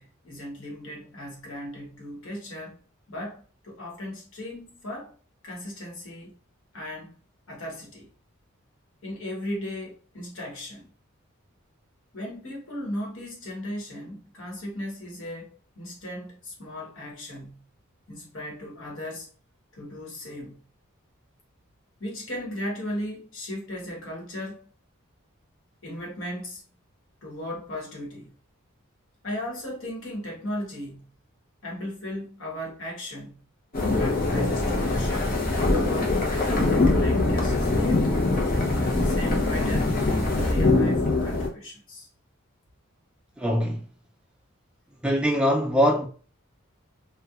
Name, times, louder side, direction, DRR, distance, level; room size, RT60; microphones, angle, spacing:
voice 1, 0.0-2.8 3.1-5.1 5.4-6.3 6.7-7.2 7.5-8.1 9.0-10.9 12.1-17.7 18.1-19.3 19.7-20.7 22.0-24.6 25.8-26.6 27.2-28.3 29.2-31.1 31.6-33.4 33.9-35.4 35.7-38.2 38.8-39.9 40.3-42.1, left 1 dB, 65° left, 1.1 m, -37 dB
sound 1, 33.7-41.5, left 2 dB, 45° left, 0.6 m, -23 dB
voice 2, 43.4-43.8 45.0-46.1, equal, 5° right, 0.3 m, -22 dB
2.9 x 2.2 x 2.3 m
head